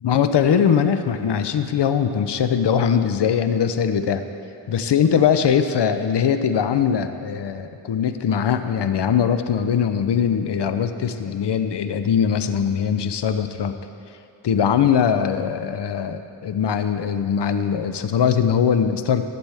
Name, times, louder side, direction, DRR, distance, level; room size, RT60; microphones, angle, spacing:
voice 1, 0.0-4.2 4.7-13.8 14.4-19.2, left 7 dB, 65° left, 9 dB, 0.7 m, -21 dB
14.5 x 7.9 x 3.4 m, 2.5 s
cardioid pair, 55°, 45 cm